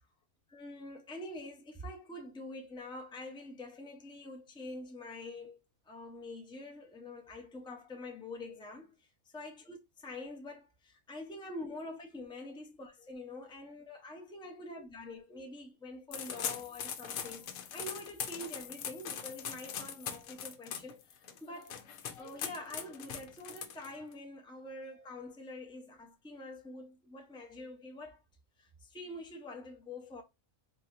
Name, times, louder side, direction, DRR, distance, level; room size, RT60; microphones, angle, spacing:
voice 1, 0.5-21.8 22.2-28.2 28.6-30.2, left 2 dB, 5° left, 0.4 m, -46 dB
sound 1, 16.1-24.1, left 8 dB, 70° left, 1.0 m, -41 dB
4.1 x 2.9 x 2.5 m
omnidirectional pair, 1.5 m